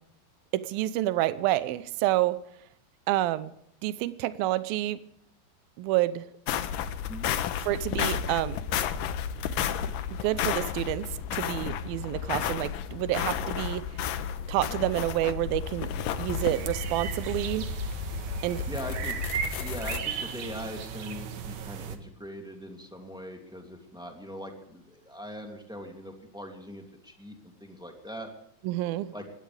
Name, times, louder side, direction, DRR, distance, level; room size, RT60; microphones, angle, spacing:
voice 1, 0.5-2.4 3.1-3.5 3.8-5.0 5.8-6.3 7.6-8.6 10.1-13.9 14.5-15.9 16.2-17.7 18.4-18.6 28.6-29.1, right 15 dB, 80° right, 14 dB, 2.1 m, -28 dB
sound 1, 6.5-20.0, left 8 dB, 90° left, 1.9 m, -32 dB
sound 2, 16.3-22.0, right 7 dB, 65° right, 2.0 m, -36 dB
voice 2, 18.7-19.1 19.6-28.3 29.1-29.2, equal, ahead, 2 dB, 1.3 m, -41 dB
22.0 x 17.0 x 3.5 m, 0.74 s
omnidirectional pair, 5.2 m